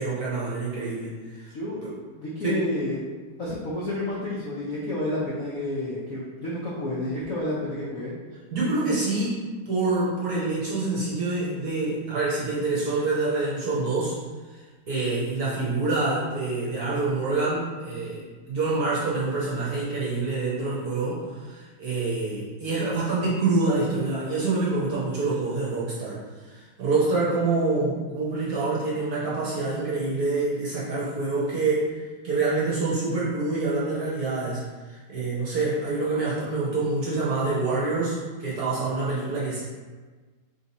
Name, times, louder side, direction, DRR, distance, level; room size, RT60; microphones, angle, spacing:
voice 1, 0.0-1.4 1.8-1.9 2.4-2.6 8.5-14.1 14.9-26.2 26.5-31.9 32.2-34.6 34.9-39.7, right 3 dB, 60° right, -7 dB, 1.1 m, -26 dB
voice 2, 2.2-3.0 3.4-8.1, left 1 dB, 70° left, -7 dB, 0.8 m, -30 dB
3.6 x 2.7 x 4.0 m, 1.4 s
omnidirectional pair, 2.3 m